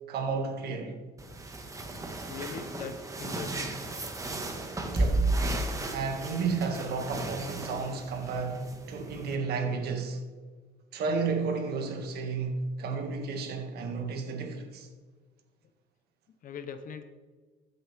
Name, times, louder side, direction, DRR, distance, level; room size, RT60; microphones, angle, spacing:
voice 1, 0.1-1.0 4.9-5.3 5.9-10.2 10.9-14.9, right 4 dB, 70° right, 1.8 m, -32 dB
sound 1, 1.2-9.4, right 2 dB, 20° right, 1.4 m, -33 dB
voice 2, 2.3-3.8 16.4-17.0, left 6 dB, 55° left, 0.8 m, -40 dB
14.0 x 7.8 x 3.4 m
cardioid pair, 110°, 17 cm